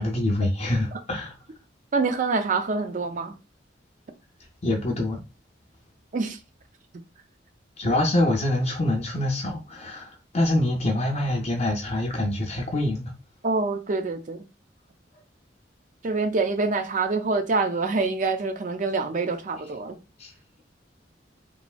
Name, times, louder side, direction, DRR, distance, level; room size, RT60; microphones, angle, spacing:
voice 1, 0.0-1.3 4.6-5.2 7.8-13.1 20.2-20.3, left 1 dB, 35° left, 0.4 m, -25 dB
voice 2, 1.9-3.3 6.1-6.4 13.4-14.4 16.0-20.0, right 3 dB, 45° right, 0.4 m, -26 dB
3.1 x 2.5 x 2.2 m
head